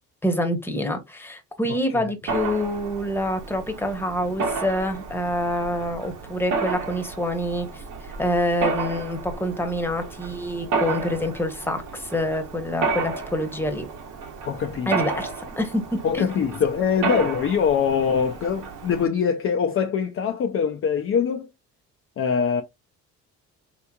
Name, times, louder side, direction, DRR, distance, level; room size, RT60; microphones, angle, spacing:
voice 1, 0.2-13.9 14.9-15.8 16.1-16.3, left 1 dB, 5° left, 0.9 m, -26 dB
voice 2, 1.7-2.1 14.4-14.9 16.0-21.5 22.2-22.6, left 7 dB, 45° left, 0.5 m, -23 dB
Mechanisms, 2.3-19.1, right 4 dB, 70° right, 1.0 m, -32 dB
3.4 x 3.0 x 2.2 m
supercardioid pair, 75°, 32 cm